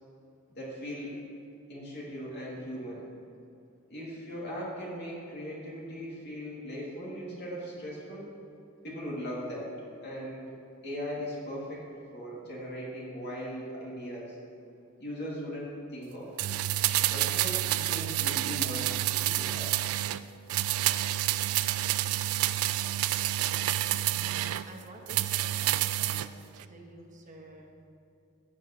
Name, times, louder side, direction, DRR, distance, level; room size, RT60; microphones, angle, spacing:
voice 1, 0.5-1.2 1.7-3.0 3.9-8.3 8.8-9.7 10.0-10.5 10.8-11.9 12.1-14.4 15.0-16.3 17.1-18.8 19.2-19.7, equal, 50° left, -6 dB, 2.5 m, -39 dB
sound 1, 16.4-20.2 20.5-24.6 25.1-26.3 26.6-26.7, right 14 dB, 90° right, 0.4 m, -28 dB
voice 2, 23.4-27.7, right 1 dB, 35° right, 1 dB, 1.3 m, -50 dB
16.5 x 8.0 x 3.0 m, 2.6 s
head